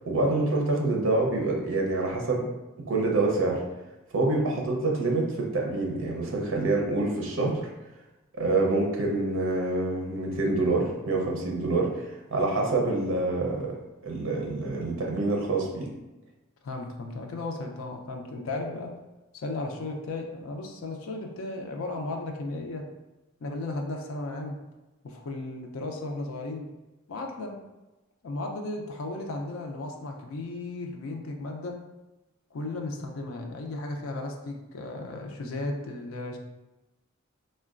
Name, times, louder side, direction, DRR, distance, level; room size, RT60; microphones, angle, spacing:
voice 1, 0.1-2.4 2.9-3.6 4.1-7.7 8.3-12.1 12.3-13.7 14.0-15.9, right 2 dB, 65° right, 0 dB, 0.6 m, -26 dB
voice 2, 16.6-19.0 19.3-22.9 23.4-24.6 25.0-26.7 27.1-27.6 28.2-31.8 32.5-36.4, left 2 dB, 75° left, 2 dB, 0.4 m, -35 dB
3.7 x 2.1 x 2.4 m, 1.0 s
head